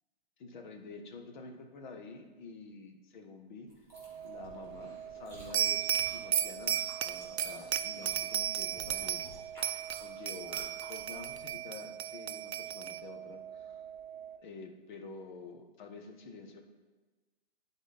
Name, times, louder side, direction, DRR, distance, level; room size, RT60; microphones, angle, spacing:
voice 1, 0.4-3.9 4.2-9.6 9.9-13.8 14.4-16.6, left 4 dB, 50° left, 5 dB, 1.0 m, -49 dB
Chewing mastication, 3.7-11.5, equal, 10° left, 2.3 m, -54 dB
sound 1, 3.9-14.4, right 9 dB, 25° right, 0.5 m, -46 dB
sound 2, 5.5-9.3 9.6-13.0, right 10 dB, 85° right, 0.5 m, -34 dB
10.5 x 4.1 x 4.0 m, 1.3 s
hypercardioid pair, 135°, 31 cm